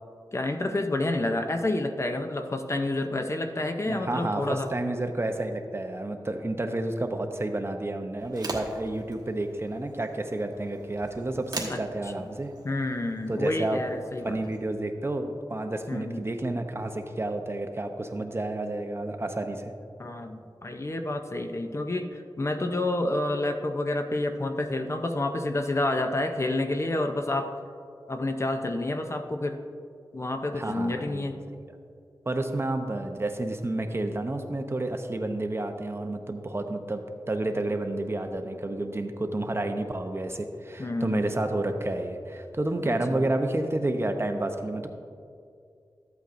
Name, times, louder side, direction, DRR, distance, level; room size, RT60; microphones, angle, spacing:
voice 1, 0.3-4.7 11.7-11.8 12.6-14.4 15.9-16.2 20.0-27.5 28.1-29.6 30.1-31.4 40.8-41.2 42.8-43.3, left 2 dB, 35° left, 6 dB, 0.6 m, -29 dB
voice 2, 3.8-12.5 13.3-13.8 14.2-19.7 30.5-31.6 32.3-44.9, right 2 dB, 30° right, 5 dB, 0.7 m, -30 dB
sound 1, 8.2-14.6, right 2 dB, 60° right, 1.3 m, -42 dB
13.0 x 8.2 x 2.6 m, 2.4 s
wide cardioid pair, 95°, 8 cm